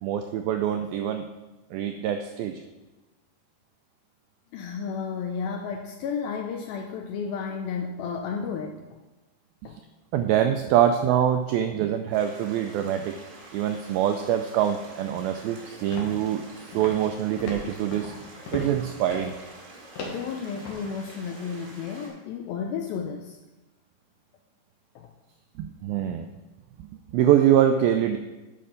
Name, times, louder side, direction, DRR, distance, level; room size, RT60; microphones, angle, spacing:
voice 1, 0.0-1.2 1.7-2.6 9.6-9.7 10.1-13.2 13.5-16.4 16.7-18.1 18.5-19.4 25.6-26.3 27.1-28.2, right 10 dB, 85° right, 7 dB, 2.1 m, -24 dB
voice 2, 4.5-9.0 9.6-9.8 20.0-23.4 25.0-25.1, left 6 dB, 80° left, 4 dB, 2.1 m, -33 dB
sound 1, 12.1-22.1, right 2 dB, 65° right, 3.6 m, -47 dB
sound 2, 15.9-16.4 16.7-17.1 17.4-18.8 19.0-19.4 20.0-20.8, left 3 dB, 65° left, 2.9 m, -37 dB
11.0 x 5.4 x 5.0 m, 1.1 s
omnidirectional pair, 4.7 m